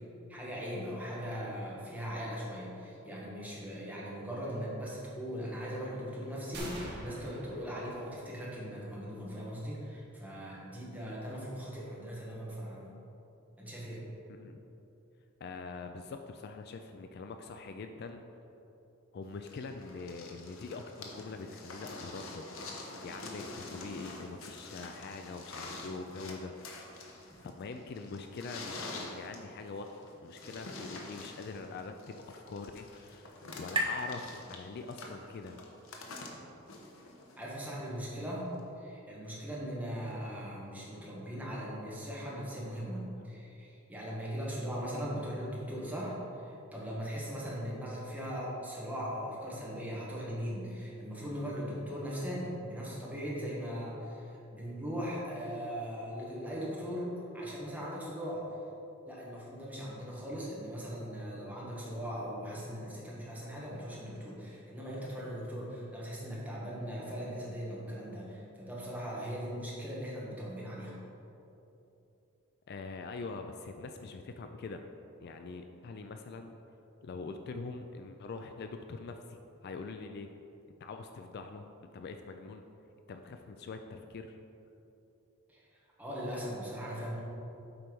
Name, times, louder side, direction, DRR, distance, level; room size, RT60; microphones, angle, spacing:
voice 1, 0.3-12.9 13.6-14.0 37.4-38.5 38.8-58.4 59.0-70.9 85.5-87.2, equal, 5° right, -6 dB, 1.5 m, -39 dB
sound 1, 6.5-8.4, right 1 dB, 50° right, 1.7 m, -44 dB
voice 2, 15.4-18.2 19.1-26.5 27.4-35.6 72.7-74.8 75.2-76.5 77.0-79.4 79.6-80.3 80.8-82.6 83.1-84.4, left 4 dB, 50° left, 6 dB, 0.3 m, -43 dB
sound 2, 19.5-37.6 38.6-38.7, left 2 dB, 70° left, 1.0 m, -46 dB
sound 3, 31.4-35.2, right 1 dB, 25° right, 0.8 m, -40 dB
7.7 x 4.5 x 5.3 m, 2.9 s
head